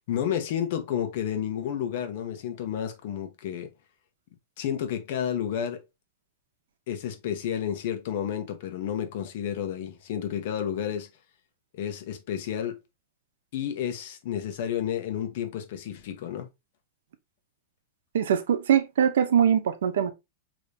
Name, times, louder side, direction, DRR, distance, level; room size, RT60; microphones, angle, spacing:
voice 1, 0.1-3.7 4.6-5.8 6.9-11.1 11.7-12.8 13.5-16.5, left 9 dB, 55° left, 1.1 m, -31 dB
voice 2, 18.1-20.1, right 8 dB, 85° right, 0.8 m, -22 dB
5.1 x 3.0 x 2.8 m
supercardioid pair, 155°, 0 cm